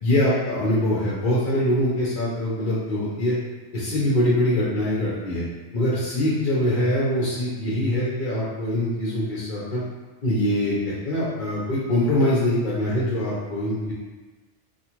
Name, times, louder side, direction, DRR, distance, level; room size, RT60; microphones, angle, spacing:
voice 1, 0.0-3.3 3.7-5.4 5.7-9.8 10.2-10.8 11.0-13.9, left 1 dB, 50° left, -8 dB, 0.7 m, -23 dB
2.4 x 2.3 x 2.9 m, 1.2 s
omnidirectional pair, 1.2 m